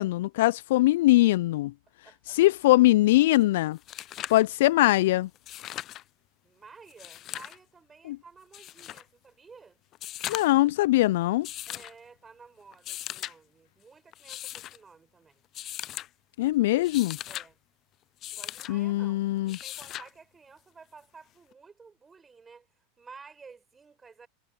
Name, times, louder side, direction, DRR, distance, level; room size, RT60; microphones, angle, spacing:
voice 1, 0.0-1.7 2.3-3.8 4.3-5.3 8.0-8.2 10.3-11.5 16.4-17.2 18.7-19.6, left 17 dB, 65° left, 0.4 m, -22 dB
voice 2, 2.0-2.4 6.4-9.8 11.7-15.4 17.3-17.6 18.3-24.3, right 5 dB, 20° right, 4.8 m, -53 dB
sound 1, 3.4-3.5 3.7-4.5 5.3-6.0 6.9-7.6 8.5-9.0 9.9-10.7 11.4-11.9 12.7-13.3 14.1-14.8 15.5-16.1 16.7-17.5 18.2-18.7 19.5-20.1 21.5-21.6, left 13 dB, 40° left, 0.8 m, -38 dB
hypercardioid pair, 85°, 0 cm